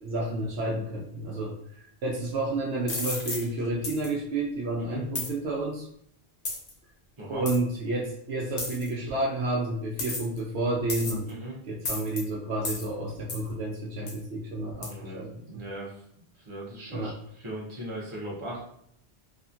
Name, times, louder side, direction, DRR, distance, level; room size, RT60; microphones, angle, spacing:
voice 1, 0.0-5.9 7.3-11.3 11.7-15.3 16.9-17.1, right 2 dB, 75° right, -3 dB, 0.9 m, -30 dB
sound 1, 2.9-3.4 3.8-4.1 5.1-5.3 6.4-6.7 7.5-7.6 8.6-8.9 10.0-10.4 10.9-11.3 11.8-12.2 12.6-12.9 13.3-13.5 14.1-14.2 14.8-14.9, left 2 dB, 45° left, 0.6 m, -33 dB
voice 2, 14.9-15.9 16.3-18.6, right 1 dB, 30° right, -5 dB, 0.9 m, -38 dB
2.9 x 2.4 x 2.5 m, 0.69 s
omnidirectional pair, 1.1 m